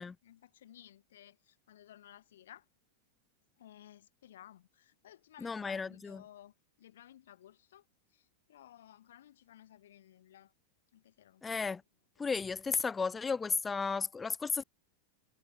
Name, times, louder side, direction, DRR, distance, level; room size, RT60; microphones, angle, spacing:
voice 1, 0.0-2.6 3.6-7.8 8.1-10.5 10.9-11.4, left 12 dB, 80° left, 1.3 m, -57 dB
voice 2, 5.4-6.2 11.4-11.8 12.2-14.6, left 5 dB, 15° left, 0.6 m, -34 dB
hypercardioid pair, 110°, 0 cm